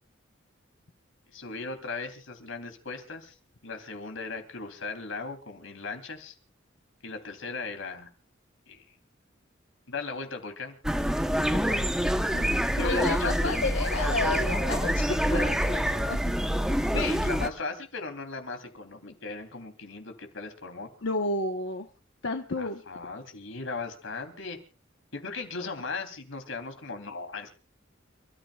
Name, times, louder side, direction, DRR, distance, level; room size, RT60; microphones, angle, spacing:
voice 1, 1.3-3.3 3.6-6.3 7.0-8.1 8.7-8.8 9.9-10.7 11.7-11.8 12.3-13.6 16.9-20.9 22.6-24.6 25.1-27.5, left 3 dB, 85° left, 6 dB, 3.2 m, -37 dB
sound 1, 10.8-17.5, equal, 5° right, 0.9 m, -26 dB
voice 2, 12.8-16.2 16.4-16.9 21.0-21.9 22.2-22.8 25.6-25.7, left 3 dB, 70° left, 4 dB, 1.1 m, -31 dB
30.0 x 13.5 x 2.4 m, 0.33 s
head